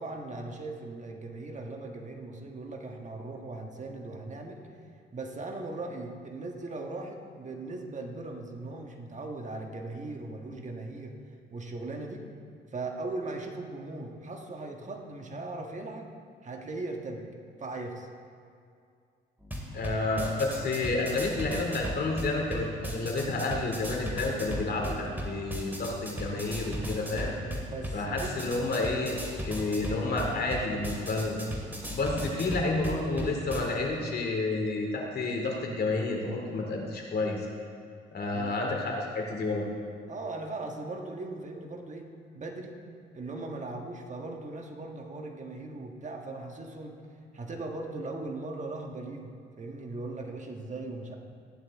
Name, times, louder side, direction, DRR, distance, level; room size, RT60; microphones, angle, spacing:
voice 1, 0.0-4.6 5.1-11.1 11.5-12.2 12.7-16.1 16.4-17.2 17.6-18.1 27.6-28.5 32.2-32.3 38.3-38.6 40.1-42.1 42.3-42.8 43.1-46.9 47.3-49.3 49.6-51.2, right 2 dB, 35° right, 2 dB, 1.5 m, -39 dB
sound 1, 19.4-33.6, equal, 10° right, 2.4 m, -37 dB
voice 2, 19.7-27.3 27.9-29.2 29.4-31.4 31.9-37.5 38.1-39.6, left 2 dB, 55° left, 0 dB, 2.5 m, -30 dB
15.5 x 10.5 x 3.6 m, 2.3 s
cardioid pair, 90°, 20 cm